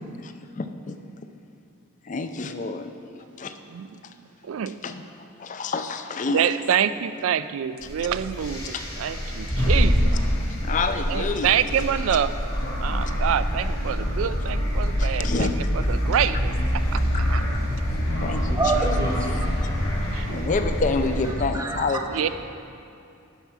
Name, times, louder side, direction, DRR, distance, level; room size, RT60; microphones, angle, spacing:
voice 1, 0.2-1.0 2.0-3.5 4.0-4.1 4.5-6.6 7.8-7.9 8.7-9.2 10.6-11.6 14.9-15.7 16.8-17.6 18.2-18.8 20.3-22.3, left 3 dB, 35° left, 8 dB, 0.4 m, -29 dB
voice 2, 4.4-4.8 6.3-10.1 11.1-12.3 12.8-15.5 15.9-16.5 16.9-17.4 20.1-20.5 22.1-22.3, right 9 dB, 70° right, 14 dB, 0.3 m, -26 dB
sound 1, 7.8-21.3, equal, 90° left, 2.4 m, -25 dB
voice 3, 18.5-19.6 21.5-22.3, right 3 dB, 15° right, 1 dB, 0.7 m, -27 dB
11.0 x 4.6 x 5.9 m, 2.6 s
head